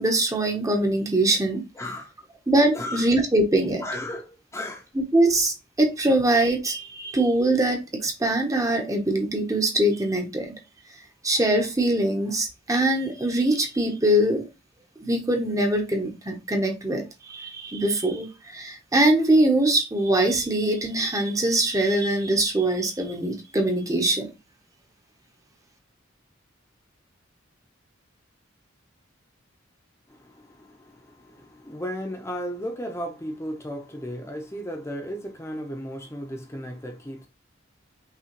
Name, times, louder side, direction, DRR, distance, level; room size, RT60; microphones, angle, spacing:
voice 1, 0.0-1.6 2.5-3.8 4.9-10.5 11.2-14.4 15.0-24.3, right 1 dB, 15° right, 0.9 m, -23 dB
voice 2, 1.7-2.1 2.7-3.1 3.8-4.9 30.1-37.3, equal, 15° left, 0.7 m, -35 dB
5.7 x 3.0 x 3.0 m
head